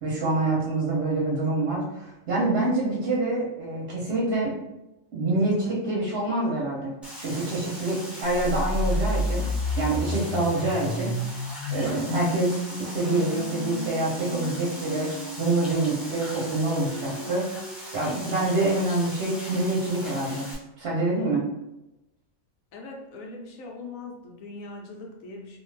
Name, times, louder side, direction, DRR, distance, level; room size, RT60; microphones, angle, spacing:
voice 1, 0.0-4.5 5.1-9.4 9.8-11.1 11.7-15.1 15.4-17.5 17.9-20.5 20.8-21.4, right 2 dB, 55° right, -4 dB, 0.8 m, -26 dB
sound 1, 7.0-20.5, equal, ahead, 0.6 m, -40 dB
sound 2, 8.3-18.3, left 1 dB, 45° left, 0.6 m, -32 dB
voice 2, 22.7-25.6, left 3 dB, 80° left, 0 dB, 1.1 m, -41 dB
2.5 x 2.4 x 3.1 m, 0.93 s
omnidirectional pair, 1.4 m